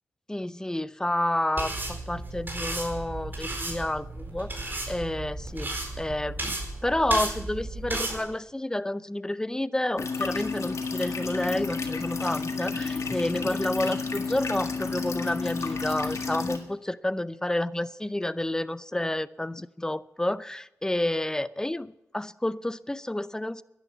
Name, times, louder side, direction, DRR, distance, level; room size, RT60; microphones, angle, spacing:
voice 1, 0.3-23.6, left 1 dB, 10° left, 16 dB, 0.5 m, -30 dB
sound 1, 1.6-8.2, right 2 dB, 35° right, 4.3 m, -34 dB
sound 2, 10.0-16.6, left 4 dB, 60° left, 1.8 m, -31 dB
11.0 x 11.0 x 8.2 m, 0.90 s
cardioid pair, 60°, 6 cm